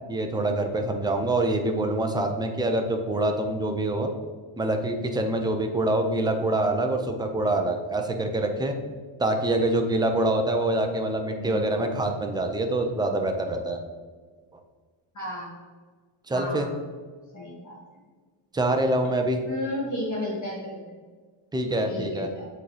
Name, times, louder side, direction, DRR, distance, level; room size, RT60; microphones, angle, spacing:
voice 1, 0.1-4.1 4.6-8.7 9.2-13.8 16.3-16.7 18.5-19.4 21.5-22.3, right 1 dB, 10° right, 4 dB, 0.4 m, -25 dB
voice 2, 11.4-11.8 15.1-15.5 16.3-16.7 17.3-17.8 19.5-20.8 21.8-22.5, left 1 dB, 35° left, -4 dB, 1.9 m, -33 dB
8.3 x 4.0 x 3.3 m, 1.5 s
cardioid pair, 145°, 50 cm